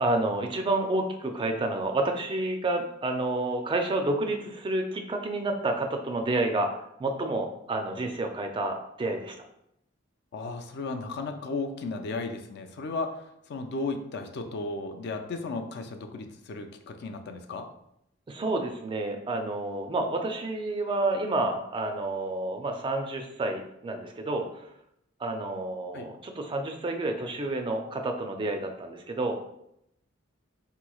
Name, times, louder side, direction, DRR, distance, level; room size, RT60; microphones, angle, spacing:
voice 1, 0.0-6.7 7.0-9.4 18.3-24.7 25.2-29.4, right 2 dB, 25° right, 4 dB, 0.3 m, -29 dB
voice 2, 10.3-13.2 13.5-17.7 25.9-26.1, left 3 dB, 55° left, 6 dB, 0.4 m, -34 dB
4.1 x 3.0 x 2.3 m, 0.78 s
head